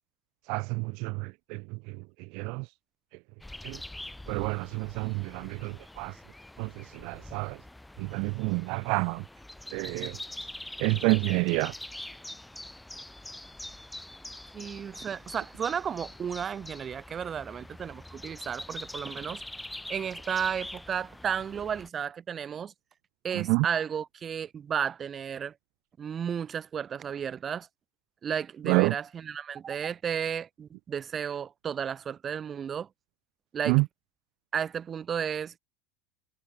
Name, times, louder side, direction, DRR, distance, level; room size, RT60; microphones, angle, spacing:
voice 1, 0.5-2.7 3.6-3.8 4.3-6.2 6.6-7.6 8.0-9.2 9.7-10.2 10.8-11.7 23.3-23.7 28.6-28.9 33.7-33.9, right 31 dB, 60° right, 0.7 m, -29 dB
sound 1, 3.4-21.9, left 1 dB, 5° left, 5.0 m, -44 dB
voice 2, 14.5-19.4 19.9-22.7 23.2-25.5 26.0-27.7 28.2-32.9 33.5-33.8 34.5-35.5, right 8 dB, 30° right, 2.0 m, -33 dB
hypercardioid pair, 80°, 0 cm